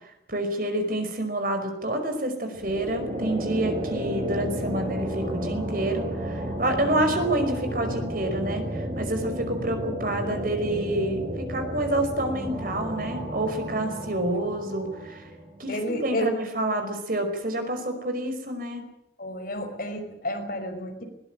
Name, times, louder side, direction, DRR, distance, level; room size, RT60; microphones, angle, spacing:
voice 1, 0.0-15.3 15.6-15.7 16.0-18.8, right 1 dB, 55° right, 6 dB, 5.2 m, -28 dB
sound 1, 2.5-15.7, right 1 dB, 30° right, 4.7 m, -32 dB
voice 2, 15.7-16.4 19.2-21.0, equal, 55° left, 4 dB, 5.6 m, -30 dB
21.5 x 19.5 x 9.2 m, 0.83 s
head